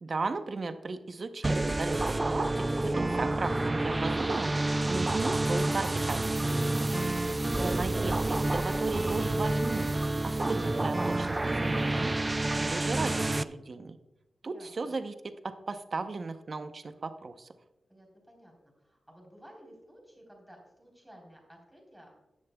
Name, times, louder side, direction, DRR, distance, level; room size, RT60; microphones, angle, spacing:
voice 1, 0.0-4.5 4.9-6.7 7.5-9.9 10.2-12.1 12.6-14.0 14.4-15.1 15.4-17.5, right 3 dB, 45° right, 9 dB, 0.7 m, -35 dB
sound 1, 1.4-13.4, right 2 dB, 20° right, 0.3 m, -29 dB
voice 2, 14.4-15.0 17.9-22.2, equal, 5° right, -1 dB, 3.7 m, -55 dB
15.0 x 10.5 x 2.3 m, 0.97 s
wide cardioid pair, 125°, 0 cm